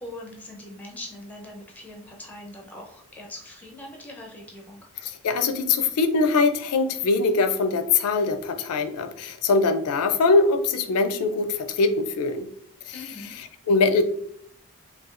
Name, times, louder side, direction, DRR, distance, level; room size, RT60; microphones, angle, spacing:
voice 1, 0.0-4.9 12.9-13.3, left 1 dB, 5° left, -1 dB, 0.6 m, -41 dB
voice 2, 5.0-12.5 12.9-13.0 13.7-14.0, left 3 dB, 80° left, 8 dB, 0.4 m, -22 dB
4.7 x 2.3 x 2.4 m, 0.64 s
head